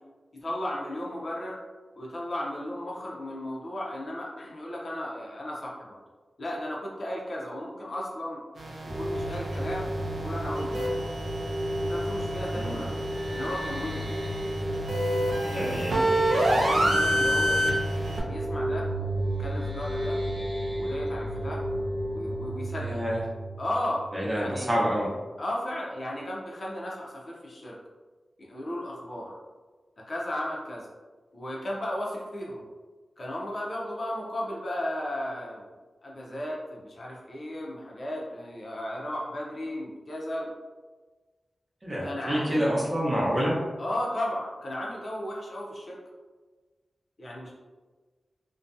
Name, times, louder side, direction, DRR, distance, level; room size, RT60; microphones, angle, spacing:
voice 1, 0.3-1.6 2.0-6.0 6.4-8.4 8.8-10.7 11.8-12.9 13.3-14.2 16.3-17.8 18.3-18.9 19.4-20.2 20.7-21.6 22.1-23.0 23.6-24.0 24.3-24.7 25.4-27.8 28.4-29.3 30.0-30.9 31.3-32.7 33.2-35.7 36.0-40.5 42.0-42.7 43.8-46.0 47.2-47.5, left 1 dB, 45° left, -4 dB, 0.5 m, -35 dB
sound 1, 8.6-18.2, right 1 dB, 75° right, 0.5 m, -29 dB
sound 2, 8.9-24.3, right 1 dB, 55° right, 0.9 m, -32 dB
voice 2, 12.4-12.9 15.5-16.0 22.8-23.2 24.1-25.1 41.8-43.6, equal, 25° right, -6 dB, 0.7 m, -27 dB
2.5 x 2.2 x 2.5 m, 1.3 s
wide cardioid pair, 125°, 0 cm